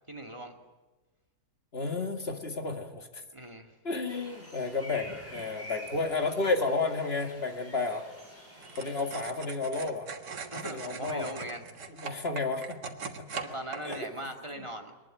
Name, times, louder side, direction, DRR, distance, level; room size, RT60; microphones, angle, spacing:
voice 1, 0.1-0.5 3.3-3.7 10.5-11.6 13.4-15.0, right 1 dB, 15° right, 2 dB, 2.3 m, -40 dB
voice 2, 1.7-3.2 3.8-8.1 8.8-10.1 10.6-11.3 11.9-12.9 13.3-13.4 13.8-14.1, left 3 dB, 35° left, 4 dB, 2.2 m, -32 dB
sound 1, 4.1-9.1, equal, 10° left, 7.1 m, -47 dB
sound 2, 8.6-14.0, right 5 dB, 80° right, 2.2 m, -42 dB
23.0 x 20.0 x 9.2 m, 1.2 s
omnidirectional pair, 1.8 m